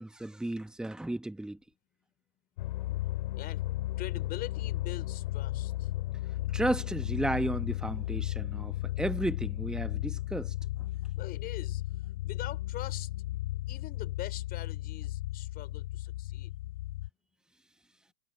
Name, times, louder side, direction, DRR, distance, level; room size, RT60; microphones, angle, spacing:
voice 1, 0.0-1.6 6.5-10.5, right 1 dB, ahead, 1.6 m, -33 dB
sound 1, 2.6-17.1, left 16 dB, 50° left, 3.1 m, -35 dB
voice 2, 4.0-5.9 11.2-11.8 12.2-13.1 13.7-16.5, left 14 dB, 25° left, 5.6 m, -43 dB
hypercardioid pair, 125°, 34 cm